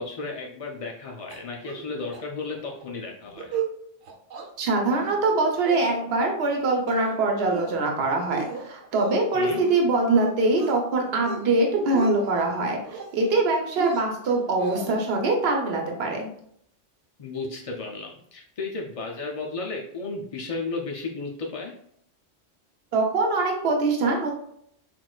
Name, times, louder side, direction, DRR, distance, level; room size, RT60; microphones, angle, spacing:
voice 1, 0.0-3.6 9.3-9.6 17.2-21.7, left 3 dB, 60° left, -1 dB, 0.3 m, -34 dB
sound 1, 1.3-1.9 2.1-2.2 2.6-2.8 3.3-3.7 4.0-4.5 4.9-5.3 5.6-6.3 6.7-7.2 7.5-7.9 8.3-9.8 10.2-10.8 11.1-11.5 11.8-12.4 12.9-13.4 13.8-15.1, right 5 dB, 85° right, 1.1 m, -35 dB
voice 2, 4.6-16.3 22.9-24.3, right 2 dB, 60° right, 1 dB, 1.0 m, -23 dB
6.0 x 2.5 x 2.3 m, 0.68 s
omnidirectional pair, 1.2 m